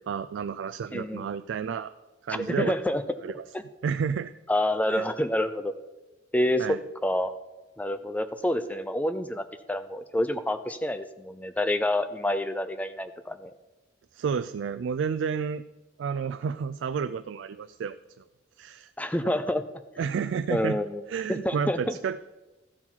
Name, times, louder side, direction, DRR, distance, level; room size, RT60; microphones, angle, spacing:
voice 1, 0.0-1.9 2.2-2.7 3.2-3.4 3.8-4.3 4.9-5.0 6.6-6.8 14.1-15.6 16.0-17.9 18.6-18.9 20.0-20.8 21.1-22.2, right 6 dB, 75° right, 11 dB, 0.3 m, -30 dB
voice 2, 0.9-1.3 2.3-3.0 3.5-3.6 4.5-5.7 6.3-6.8 7.0-7.3 7.8-13.5 19.0-19.6 20.2-20.3 20.5-21.0 21.3-22.0, left 1 dB, 10° left, 11 dB, 0.4 m, -28 dB
13.5 x 4.7 x 5.6 m, 1.1 s
head